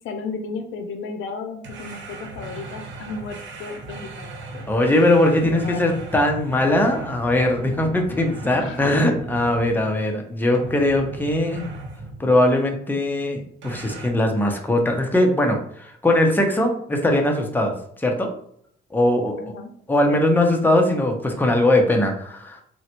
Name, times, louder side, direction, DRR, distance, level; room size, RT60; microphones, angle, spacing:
voice 1, 0.0-4.7 5.5-6.0 8.6-8.9 19.4-19.7, left 4 dB, 80° left, 7 dB, 0.5 m, -34 dB
sound 1, 1.6-10.1 10.5-12.3 13.6-14.1, right 2 dB, 70° right, 1.0 m, -37 dB
voice 2, 4.7-11.6 12.2-17.7 18.0-18.3 18.9-19.4 19.9-22.6, left 1 dB, 10° left, 2 dB, 0.6 m, -20 dB
3.8 x 2.2 x 2.9 m, 0.67 s
cardioid pair, 90°, 20 cm